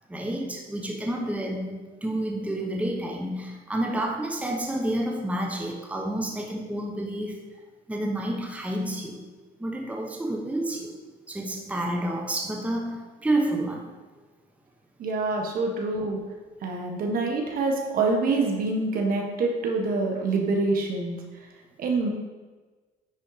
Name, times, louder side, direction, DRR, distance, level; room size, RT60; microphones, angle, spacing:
voice 1, 0.1-7.4 7.9-9.3 9.6-11.0 11.3-13.9, right 1 dB, 10° right, 1 dB, 1.1 m, -29 dB
voice 2, 15.0-16.2 16.6-21.2 21.8-22.1, right 3 dB, 60° right, 2 dB, 1.6 m, -26 dB
9.8 x 4.3 x 5.0 m, 1.3 s
cardioid pair, 110°, 17 cm